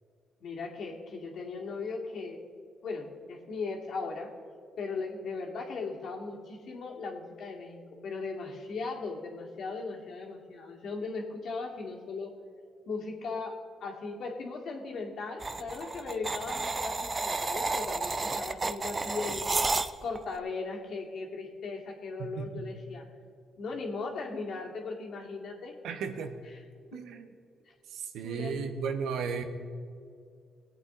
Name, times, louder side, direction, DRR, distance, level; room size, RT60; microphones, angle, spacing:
voice 1, 0.4-2.4 2.8-4.3 4.8-12.4 12.9-23.0 23.6-25.8 26.9-27.0 28.2-28.6, left 4 dB, 65° left, 0 dB, 2.2 m, -38 dB
sound 1, 15.4-20.2, right 3 dB, 25° right, 0.5 m, -31 dB
voice 2, 22.2-22.7 25.8-26.4 26.9-27.3 27.9-29.4, right 6 dB, 80° right, 7 dB, 1.1 m, -35 dB
19.5 x 8.4 x 3.8 m, 2.3 s
cardioid pair, 90°, 0 cm